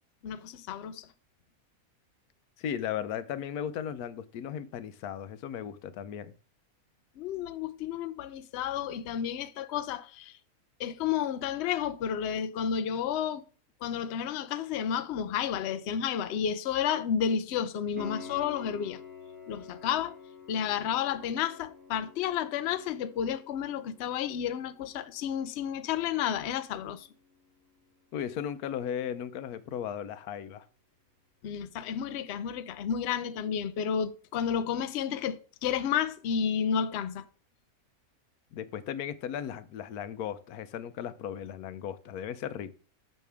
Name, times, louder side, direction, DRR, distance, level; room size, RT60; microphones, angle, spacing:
voice 1, 0.2-1.1 7.2-10.4 10.8-13.4 13.8-19.0 19.5-20.1 20.5-27.1 31.4-37.2, left 8 dB, 60° left, 0.7 m, -31 dB
voice 2, 2.6-6.3 28.1-30.7 38.5-42.8, left 9 dB, 90° left, 1.2 m, -36 dB
Piano, 18.0-28.6 31.9-32.0, left 5 dB, 5° right, 2.2 m, -50 dB
6.4 x 6.4 x 3.4 m
omnidirectional pair, 1.5 m